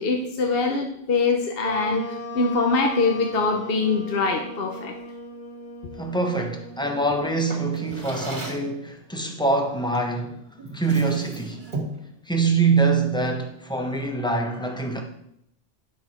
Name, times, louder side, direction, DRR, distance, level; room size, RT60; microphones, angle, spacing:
voice 1, 0.0-4.9, left 3 dB, 55° left, 1.1 m, -23 dB
sound 1, 1.6-8.3, equal, 90° left, 3.6 m, -38 dB
voice 2, 6.0-10.4 10.7-11.6 12.3-15.0, right 3 dB, 5° left, 1.1 m, -24 dB
Drawer open or close, 7.5-8.7 9.9-10.2 10.6-12.1, right 2 dB, 45° right, 2.2 m, -35 dB
10.0 x 6.2 x 4.4 m
omnidirectional pair, 1.2 m